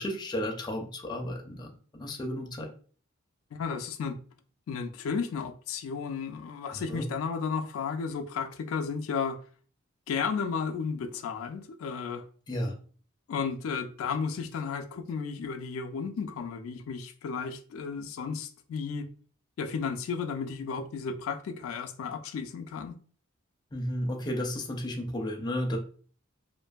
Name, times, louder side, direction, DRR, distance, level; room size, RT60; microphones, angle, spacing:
voice 1, 0.0-1.7 2.0-2.7 6.7-7.1 12.5-12.7 23.7-25.8, left 1 dB, 20° left, 0.4 m, -33 dB
voice 2, 3.5-4.2 4.7-9.4 10.1-12.3 13.3-19.1 19.6-23.0, left 5 dB, 85° left, 0.3 m, -33 dB
2.5 x 2.5 x 2.2 m
head